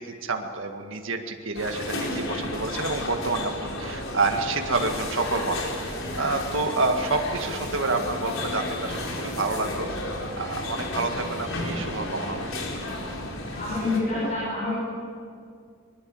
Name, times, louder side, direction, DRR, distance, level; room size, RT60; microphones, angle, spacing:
voice 1, 0.0-12.5, right 3 dB, 70° right, 4 dB, 2.0 m, -28 dB
sound 1, 1.5-14.0, left 1 dB, 75° left, 4.5 m, -33 dB
voice 2, 13.5-14.7, left 2 dB, 35° left, -6 dB, 6.4 m, -27 dB
22.0 x 21.5 x 7.9 m, 2.2 s
head